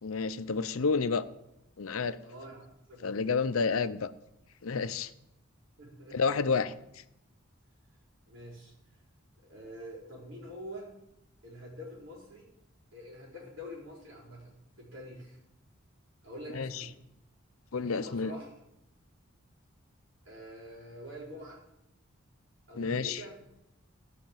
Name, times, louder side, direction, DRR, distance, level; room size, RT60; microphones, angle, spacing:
voice 1, 0.0-1.2 1.8-2.2 3.0-4.1 4.6-5.1 6.1-6.7 16.5-16.8 17.7-18.3 22.8-23.2, left 5 dB, 85° left, 13 dB, 0.6 m, -30 dB
voice 2, 2.2-3.5 5.8-6.7 8.3-8.7 9.4-10.9 11.4-12.5 12.9-15.4 16.2-17.0 17.8-18.5 20.2-21.6 22.7-23.4, equal, 65° right, -3 dB, 4.8 m, -46 dB
15.5 x 5.9 x 7.5 m, 0.85 s
head